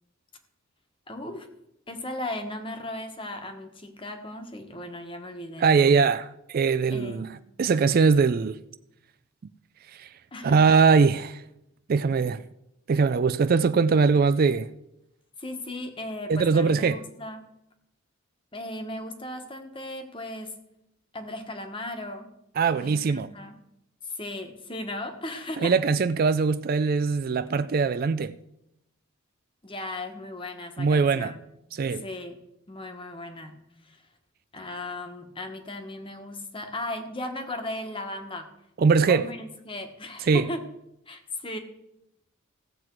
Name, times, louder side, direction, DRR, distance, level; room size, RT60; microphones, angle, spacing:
voice 1, 1.1-1.5 1.9-6.1 6.9-7.3 10.3-10.6 15.4-17.4 18.5-20.6 21.1-22.3 22.7-23.6 24.0-25.7 29.6-31.5 31.9-32.4 32.7-33.5 33.8-34.0 34.5-38.5 39.1-40.6 41.1-41.6, left 1 dB, 25° left, 1.3 m, -36 dB
voice 2, 5.6-7.3 7.6-8.6 9.9-10.1 10.4-11.4 11.9-12.4 12.9-14.7 16.3-17.0 22.6-23.3 25.6-28.3 30.8-31.3 31.8-32.0 38.8-39.3 40.3-40.5, right 5 dB, 45° right, 0.3 m, -21 dB
16.0 x 7.6 x 4.6 m
head